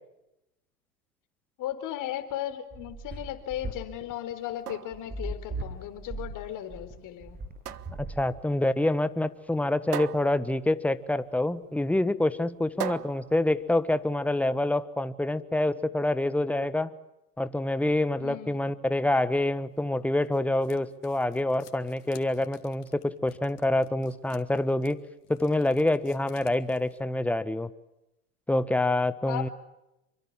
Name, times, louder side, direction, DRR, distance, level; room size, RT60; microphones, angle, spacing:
voice 1, 1.6-7.4 18.2-18.7 29.3-29.5, left 12 dB, 40° left, 10 dB, 4.2 m, -36 dB
sound 1, 2.2-8.8, right 2 dB, 20° right, 7.4 m, -38 dB
sound 2, 4.4-14.4, right 11 dB, 80° right, 1.5 m, -41 dB
voice 2, 8.0-16.9 17.4-25.0 25.3-27.7 28.5-29.5, left 1 dB, 5° left, 13 dB, 1.4 m, -26 dB
sound 3, 19.7-27.0, left 10 dB, 75° left, 3.3 m, -54 dB
28.0 x 24.5 x 7.5 m, 0.90 s
hypercardioid pair, 100°, 46 cm